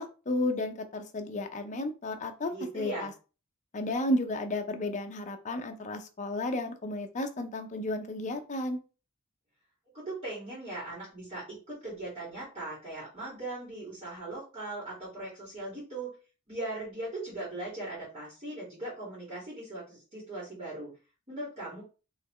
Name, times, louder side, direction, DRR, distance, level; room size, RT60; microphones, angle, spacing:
voice 1, 0.0-3.1 3.7-8.8, left 1 dB, 35° left, 6 dB, 0.5 m, -33 dB
voice 2, 2.5-3.1 9.9-16.1 16.5-20.9 21.3-21.8, right 2 dB, 30° right, -7 dB, 2.0 m, -39 dB
4.1 x 3.0 x 3.1 m, 0.34 s
head